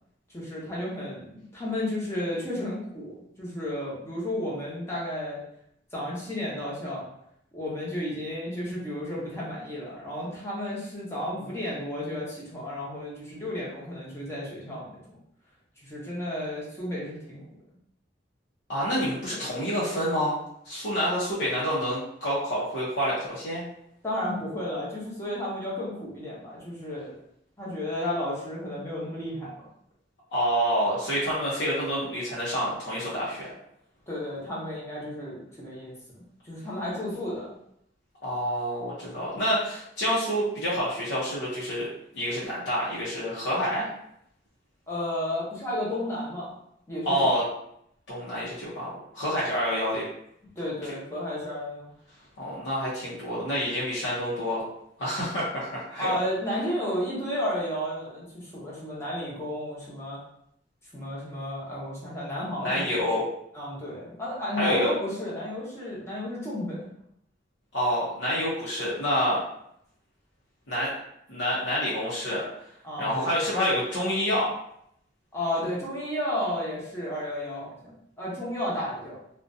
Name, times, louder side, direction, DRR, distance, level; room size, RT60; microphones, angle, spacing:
voice 1, 0.3-5.4 5.9-7.0 7.5-15.0 15.8-17.4 24.0-27.1 27.6-29.5 34.1-37.6 44.9-46.5 46.9-47.3 50.6-51.9 56.0-60.2 60.9-63.0 63.5-66.9 72.8-73.3 75.3-79.2, left 1 dB, 15° left, -6 dB, 0.8 m, -32 dB
voice 2, 18.7-20.4 20.6-23.6 30.3-33.5 38.2-41.9 42.1-43.9 47.0-47.4 48.1-50.0 50.8-50.9 52.4-54.6 55.0-56.1 62.6-63.2 64.5-64.9 67.7-69.4 70.7-70.9 71.3-72.4 73.0-74.5, equal, 75° left, -8 dB, 0.7 m, -27 dB
2.5 x 2.2 x 2.5 m, 0.73 s
head